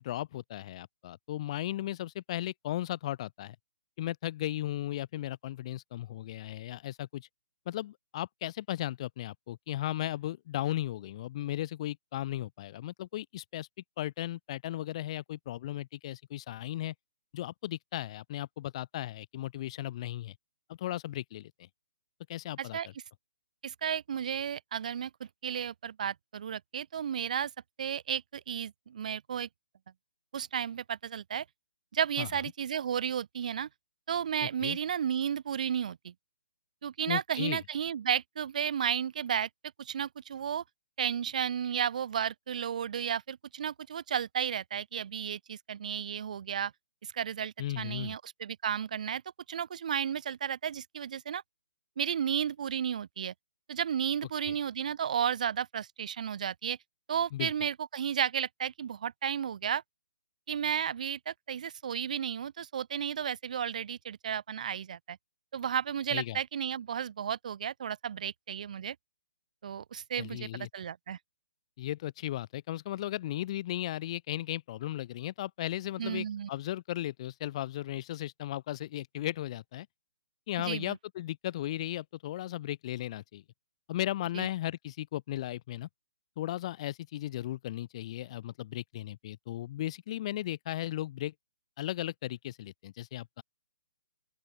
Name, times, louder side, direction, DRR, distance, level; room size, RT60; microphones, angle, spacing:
voice 1, 0.0-3.6 4.0-7.3 7.7-13.7 14.0-16.9 17.3-20.3 20.7-21.7 22.3-22.8 32.2-32.3 34.4-34.8 37.1-37.6 47.6-48.2 54.5-54.6 57.3-57.5 66.1-66.4 70.2-70.7 71.8-79.9 80.5-83.4 83.9-85.9 86.4-91.3 91.8-93.4, left 14 dB, 35° left, 3.0 m, -36 dB
voice 2, 23.6-25.1 25.4-27.5 27.8-29.5 30.3-31.4 31.9-33.7 34.1-36.1 36.8-39.5 39.8-40.6 41.0-46.7 47.1-49.2 49.5-51.4 52.0-53.3 53.7-56.8 57.1-59.8 60.5-65.2 65.5-69.0 69.6-71.2 76.0-76.5 80.6-81.0 84.3-84.5, right 8 dB, 50° right, 0.7 m, -33 dB
open air
figure-of-eight pair, 130°, 5 cm